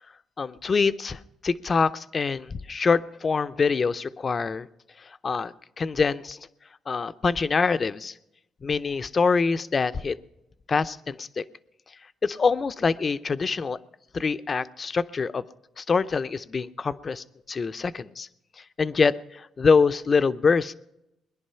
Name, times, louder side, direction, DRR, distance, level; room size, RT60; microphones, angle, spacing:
voice 1, 0.4-4.7 5.2-6.4 6.9-8.1 8.6-10.1 10.7-11.4 12.2-13.8 14.1-15.4 15.8-18.3 18.8-20.7, left 5 dB, 40° left, 13 dB, 0.6 m, -25 dB
21.0 x 11.0 x 5.6 m, 0.87 s
cardioid pair, 90°, 0 cm